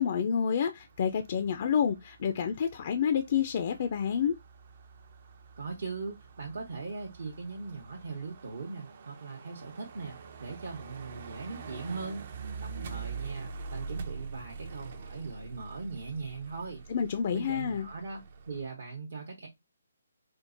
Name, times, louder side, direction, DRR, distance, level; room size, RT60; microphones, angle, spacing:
voice 1, 0.0-4.3 16.9-17.9, left 7 dB, 45° left, 0.4 m, -29 dB
sound 1, 0.8-18.7, right 5 dB, 50° right, 0.5 m, -45 dB
voice 2, 5.6-12.3 12.6-16.8 17.3-19.5, right 4 dB, 65° right, 0.9 m, -40 dB
4.4 x 2.1 x 2.5 m
figure-of-eight pair, 145°, 0 cm